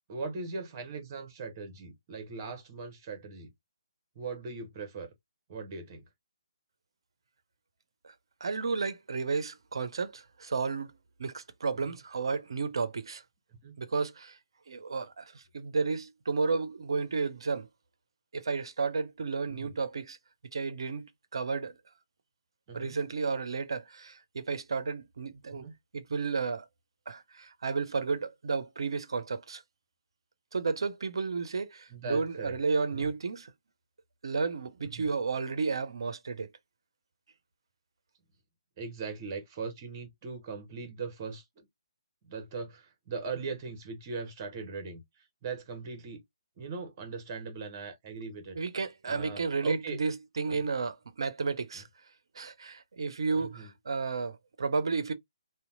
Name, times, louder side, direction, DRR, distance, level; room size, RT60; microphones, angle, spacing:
voice 1, 0.1-3.5 4.2-5.1 5.5-6.0 13.6-13.8 19.5-19.7 22.7-23.0 25.5-25.7 31.9-32.5 32.9-33.1 34.9-35.1 38.8-41.6 42.2-45.0 45.4-46.2 46.6-48.6 49.1-50.0 50.5-50.6 53.3-53.7, right 4 dB, 30° right, 0.9 m, -39 dB
voice 2, 8.4-10.9 11.2-13.2 13.8-14.4 14.7-17.7 18.3-20.2 20.5-21.8 22.7-25.7 25.9-26.7 27.1-29.6 30.5-33.5 34.2-36.5 48.5-51.9 52.3-55.1, right 4 dB, 60° right, 0.5 m, -32 dB
2.7 x 2.1 x 2.4 m
figure-of-eight pair, 140°, 3 cm